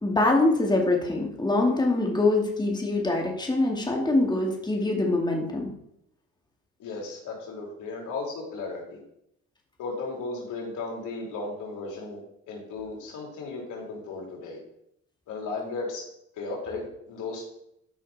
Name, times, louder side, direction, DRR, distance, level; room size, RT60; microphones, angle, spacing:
voice 1, 0.0-5.7, left 2 dB, 15° left, 0 dB, 2.3 m, -24 dB
voice 2, 6.8-9.0 9.8-12.2 12.5-14.6 15.3-16.0 16.3-17.4, left 3 dB, 85° left, -1 dB, 3.4 m, -35 dB
12.5 x 5.8 x 4.2 m, 0.77 s
cardioid pair, 90°, 30 cm